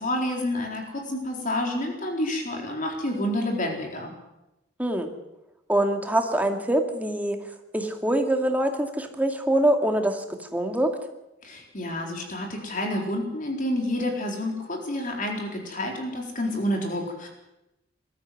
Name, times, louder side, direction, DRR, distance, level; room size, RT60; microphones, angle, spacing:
voice 1, 0.0-4.1 11.4-17.3, left 1 dB, 45° left, 1 dB, 4.1 m, -29 dB
voice 2, 4.8-5.1 5.7-7.4 7.7-10.2 10.5-10.9, right 1 dB, 10° right, 4 dB, 2.3 m, -24 dB
21.5 x 13.5 x 9.4 m, 0.93 s
head